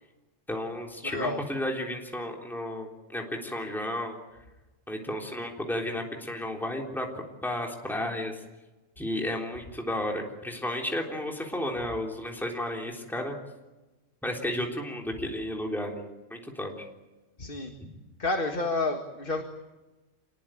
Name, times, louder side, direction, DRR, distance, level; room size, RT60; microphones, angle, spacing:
voice 1, 0.5-4.2 4.9-8.4 9.0-13.4 14.2-16.9, left 1 dB, ahead, 1 dB, 3.6 m, -33 dB
voice 2, 1.0-1.4 17.4-17.7 18.2-19.4, left 2 dB, 40° left, 4 dB, 2.1 m, -29 dB
27.5 x 21.0 x 9.1 m, 1.1 s
omnidirectional pair, 1.3 m